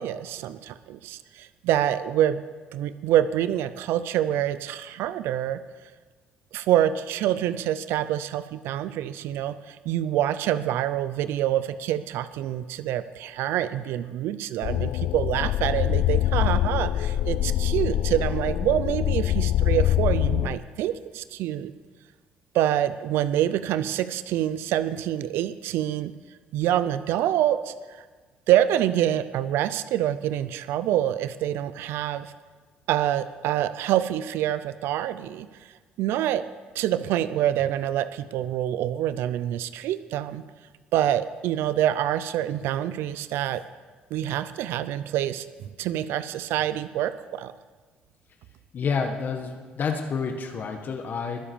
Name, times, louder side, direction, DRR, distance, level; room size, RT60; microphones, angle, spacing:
voice 1, 0.0-2.4 2.7-5.6 6.5-21.7 22.5-26.1 26.5-27.7 28.5-32.3 32.9-35.5 36.0-36.4 36.8-40.4 40.9-43.6 44.1-45.5 45.8-47.5, right 12 dB, 80° right, 14 dB, 0.5 m, -26 dB
sound 1, 14.6-20.5, left 13 dB, 70° left, 0.4 m, -24 dB
voice 2, 48.7-51.5, left 5 dB, 50° left, 5 dB, 1.4 m, -29 dB
20.5 x 7.3 x 6.9 m, 1.4 s
supercardioid pair, 75°, 4 cm